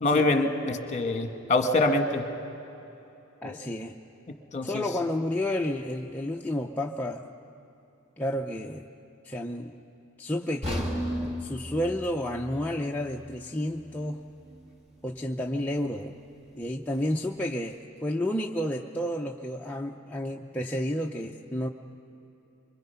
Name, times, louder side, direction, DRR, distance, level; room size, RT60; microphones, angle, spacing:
voice 1, 0.0-2.2 3.4-3.6 4.5-4.9, left 2 dB, 35° left, 6 dB, 1.4 m, -25 dB
voice 2, 3.4-3.9 4.6-7.2 8.2-8.9 9.2-9.8 10.2-14.2 15.0-16.2 16.5-21.7, left 1 dB, 10° left, -1 dB, 0.6 m, -31 dB
sound 1, 10.6-14.7 15.0-15.2 15.8-15.9, equal, 30° right, 2.4 m, -36 dB
25.5 x 24.5 x 5.7 m, 2.9 s
head